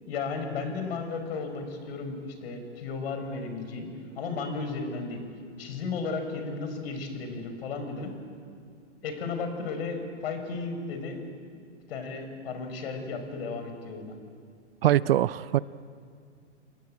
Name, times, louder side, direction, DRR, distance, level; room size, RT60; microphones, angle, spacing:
voice 1, 0.1-3.9 4.2-5.2 5.6-8.1 9.0-11.2 11.9-14.1, left 4 dB, 55° left, 7 dB, 5.6 m, -34 dB
voice 2, 14.8-15.6, right 13 dB, 55° right, 18 dB, 0.7 m, -22 dB
28.5 x 20.5 x 8.7 m, 2.2 s
hypercardioid pair, 125°, 36 cm